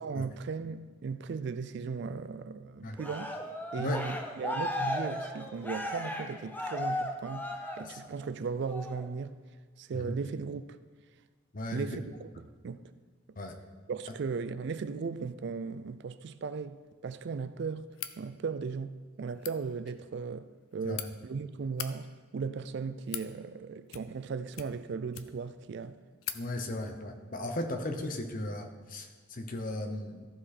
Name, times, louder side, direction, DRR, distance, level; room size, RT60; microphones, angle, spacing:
voice 1, 0.0-3.3 3.7-7.5 7.8-9.4 9.8-10.8 11.7-12.8 13.9-22.1 22.3-26.0, right 5 dB, 55° right, 0.3 m, -37 dB
Cheering, 3.0-8.2 8.7-9.0, left 1 dB, 10° left, 0.6 m, -36 dB
voice 2, 11.5-11.9 13.4-13.5 20.8-21.0 26.3-30.3, left 1 dB, 40° left, 0.8 m, -36 dB
sound 1, 17.9-18.2 19.3-19.6 20.5-21.1 21.6-21.9 22.7-23.3 23.9-24.3 24.5-25.5 25.8-25.9 26.2-26.4, left 11 dB, 75° left, 0.5 m, -40 dB
14.0 x 5.0 x 4.2 m
head